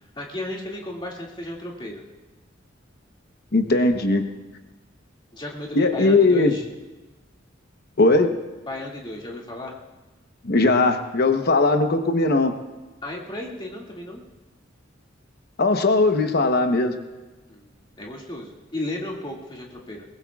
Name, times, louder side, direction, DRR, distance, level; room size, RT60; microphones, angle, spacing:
voice 1, 0.2-2.0 5.3-6.6 8.7-9.7 13.0-14.2 17.5-20.0, left 1 dB, 25° left, -2 dB, 2.3 m, -34 dB
voice 2, 3.5-4.2 5.8-6.5 8.0-8.3 10.4-12.5 15.6-17.0, left 2 dB, 55° left, 6 dB, 1.0 m, -19 dB
22.5 x 19.5 x 2.4 m, 1.2 s
head